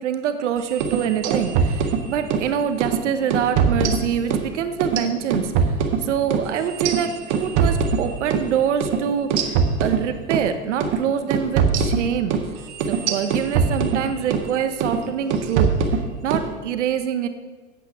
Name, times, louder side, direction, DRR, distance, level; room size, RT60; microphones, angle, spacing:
voice 1, 0.0-5.5 6.0-12.3 12.9-15.7 16.2-17.3, right 8 dB, 85° right, 9 dB, 0.9 m, -25 dB
sound 1, 0.7-2.5 2.8-3.0 3.3-4.5 4.8-8.5 8.8-9.0 9.3-10.5 10.8-11.0 11.3-14.5 14.8-15.0 15.3-16.5, right 6 dB, 25° right, 0.6 m, -22 dB
8.5 x 8.3 x 5.9 m, 1.4 s
supercardioid pair, 170°, 35 cm